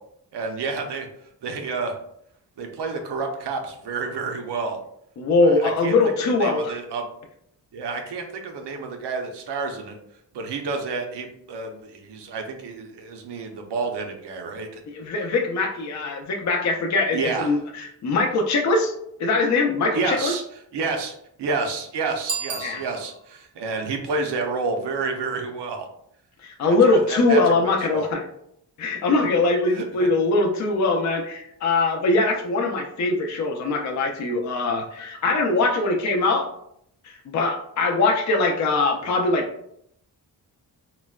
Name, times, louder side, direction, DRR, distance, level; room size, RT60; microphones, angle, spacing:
voice 1, 0.3-1.1 1.4-2.0 2.6-4.8 5.4-5.9 6.4-7.1 7.7-10.0 10.3-14.8 17.1-17.5 19.9-20.4 20.7-25.9 26.6-27.4 27.9-28.1 29.7-30.1, right 4 dB, 80° right, 4 dB, 0.6 m, -29 dB
voice 2, 5.2-6.8 14.9-18.9 19.2-20.3 22.6-22.8 26.4-28.2 28.8-36.5 37.0-39.5, left 3 dB, 45° left, 3 dB, 0.4 m, -22 dB
Bicycle bell, 22.2-23.4, right 5 dB, 35° right, 0.5 m, -33 dB
3.8 x 2.1 x 2.3 m, 0.73 s
wide cardioid pair, 115°, 41 cm